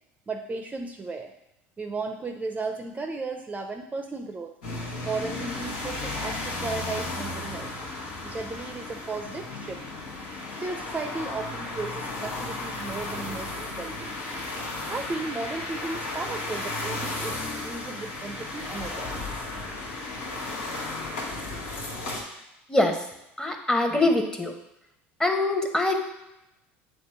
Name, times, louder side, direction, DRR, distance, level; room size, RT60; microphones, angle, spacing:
voice 1, 0.3-1.3 1.8-4.5 5.0-7.7 8.2-9.8 10.6-14.2 14.9-19.5, right 3 dB, 20° right, 5 dB, 0.6 m, -35 dB
sound 1, 4.6-22.2, left 2 dB, 80° left, 1.6 m, -34 dB
voice 2, 23.4-24.5 25.2-25.9, left 2 dB, 10° left, 4 dB, 1.0 m, -23 dB
7.6 x 3.2 x 4.5 m, 0.89 s
hypercardioid pair, 85°, 6 cm